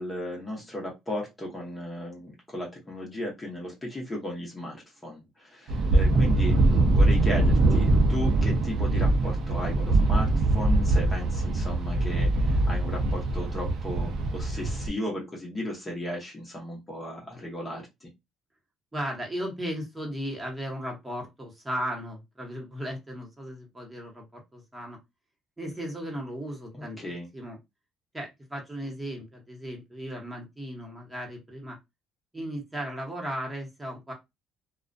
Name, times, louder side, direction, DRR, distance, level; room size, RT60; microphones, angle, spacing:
voice 1, 0.0-18.1 26.7-27.3, left 1 dB, 20° left, -1 dB, 0.8 m, -35 dB
sound 1, 5.7-14.9, right 2 dB, 60° right, 0.5 m, -23 dB
voice 2, 18.9-25.0 25.6-27.6 28.1-31.8 32.3-34.1, equal, 10° right, -1 dB, 1.0 m, -36 dB
2.3 x 2.1 x 2.5 m, 0.21 s
cardioid pair, 105°, 0 cm